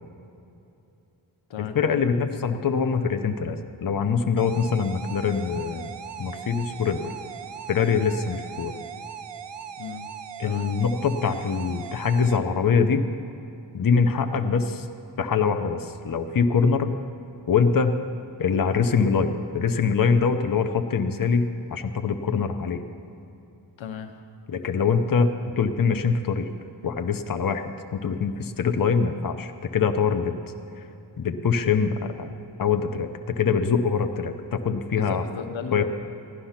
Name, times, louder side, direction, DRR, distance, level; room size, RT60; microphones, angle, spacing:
voice 1, 1.6-5.9 6.2-7.1 7.7-8.7 10.4-13.0 13.7-14.9 15.2-16.9 17.5-17.9 18.4-21.4 21.7-22.8 24.5-25.3 25.6-26.5 26.8-30.3 31.2-32.3 32.6-35.2 35.7-35.8, left 5 dB, 45° left, 7 dB, 0.9 m, -23 dB
sound 1, 4.4-12.4, right 8 dB, 65° right, 0.8 m, -39 dB
voice 2, 9.8-10.1 10.4-10.7 23.8-24.2 34.9-35.8, left 7 dB, 85° left, 6 dB, 1.0 m, -36 dB
15.0 x 11.5 x 5.8 m, 2.9 s
wide cardioid pair, 75°, 45 cm